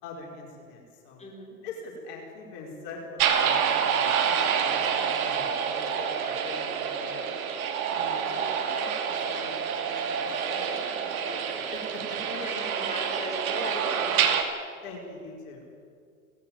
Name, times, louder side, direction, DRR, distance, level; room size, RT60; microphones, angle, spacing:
voice 1, 0.0-1.2 1.6-7.4 7.9-12.4 14.8-15.7, left 3 dB, 55° left, 0 dB, 5.0 m, -44 dB
voice 2, 1.2-1.6 6.6-6.9 8.1-8.6 11.2-11.3 12.3-14.2, left 1 dB, 15° left, -1 dB, 4.8 m, -39 dB
sound 1, 3.2-14.4, right 7 dB, 70° right, 2.5 m, -27 dB
18.0 x 16.0 x 8.9 m, 2.2 s
hypercardioid pair, 85°, 44 cm